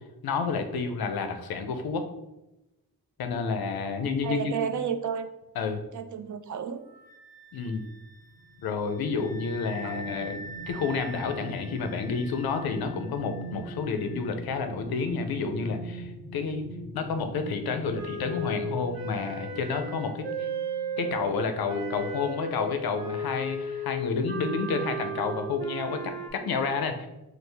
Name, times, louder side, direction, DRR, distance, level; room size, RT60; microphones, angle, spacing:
voice 1, 0.2-2.1 3.2-4.5 5.6-5.8 7.5-7.8 8.6-10.4 10.7-16.6 16.9-20.5 21.0-27.1, left 5 dB, 90° left, 7 dB, 0.5 m, -30 dB
voice 2, 4.2-5.3 5.9-6.8 9.2-9.3 9.8-9.9, right 7 dB, 55° right, 9 dB, 0.4 m, -32 dB
Wind instrument woodwind instrument, 6.8-14.3, right 1 dB, 5° right, 1.1 m, -46 dB
sound 1, 8.2-21.2 21.6-21.8, equal, 25° left, 0.5 m, -43 dB
Wind instrument woodwind instrument 2, 18.0-21.3 21.7-26.3, right 1 dB, 90° right, 0.7 m, -34 dB
4.4 x 2.0 x 3.3 m, 0.97 s
cardioid pair, 55°, 36 cm